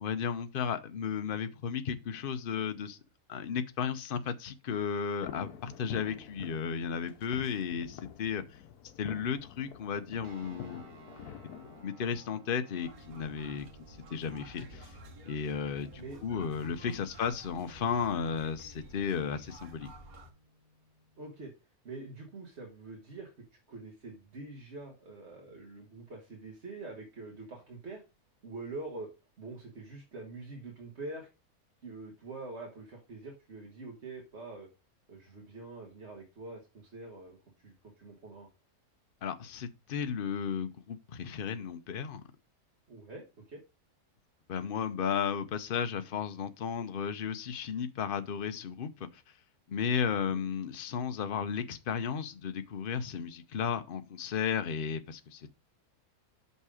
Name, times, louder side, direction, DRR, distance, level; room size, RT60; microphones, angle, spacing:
voice 1, 0.0-3.0 3.3-8.6 9.0-10.8 11.8-15.0 15.3-19.9 39.2-42.2 44.5-49.2 49.7-55.6, left 7 dB, 45° left, 0.8 m, -34 dB
sound 1, 5.2-11.8, left 9 dB, 85° left, 1.3 m, -47 dB
sound 2, 10.2-21.4, right 2 dB, 90° right, 1.8 m, -58 dB
sound 3, 12.8-20.3, right 1 dB, 75° right, 1.7 m, -52 dB
voice 2, 16.6-17.0 21.2-21.5 21.8-23.3 23.7-28.0 28.4-29.1 29.4-31.3 31.8-34.7 35.1-38.5 42.9-43.6 50.1-50.4, right 3 dB, 50° right, 1.7 m, -45 dB
6.0 x 5.5 x 4.8 m
omnidirectional pair, 1.6 m